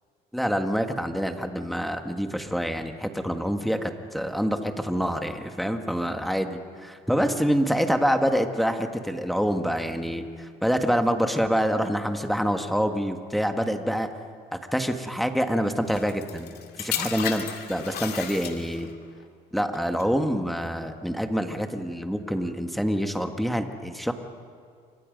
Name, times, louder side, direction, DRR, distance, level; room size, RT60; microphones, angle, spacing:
voice 1, 0.3-14.1 14.7-18.9 19.5-24.1, equal, ahead, 6 dB, 1.7 m, -26 dB
sound 1, 15.9-18.9 19.7-20.0, left 9 dB, 70° left, 2.3 m, -33 dB
28.5 x 25.0 x 5.3 m, 2.2 s
cardioid pair, 110°, 17 cm